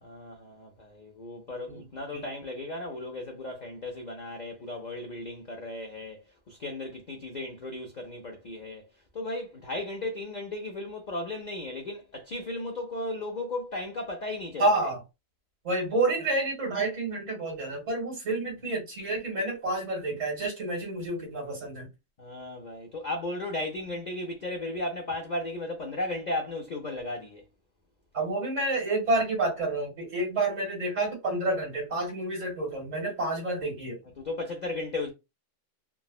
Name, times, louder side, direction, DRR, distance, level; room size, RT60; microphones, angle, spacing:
voice 1, 0.0-8.9 9.1-14.7 22.2-27.4 34.2-35.1, left 2 dB, 60° left, 0.4 m, -35 dB
voice 2, 14.6-15.0 15.6-21.9 28.1-34.0, right 2 dB, 65° right, 2.0 m, -29 dB
3.5 x 2.0 x 2.3 m
omnidirectional pair, 1.4 m